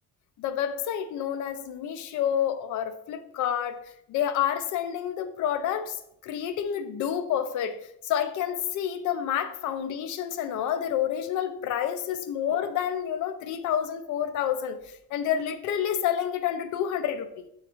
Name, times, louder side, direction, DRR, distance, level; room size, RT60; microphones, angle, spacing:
voice 1, 0.4-3.8 4.1-6.0 6.2-7.8 8.0-14.8 15.1-17.5, left 9 dB, 70° left, 11 dB, 0.5 m, -29 dB
4.1 x 3.6 x 3.0 m, 0.76 s
cardioid pair, 130°, 31 cm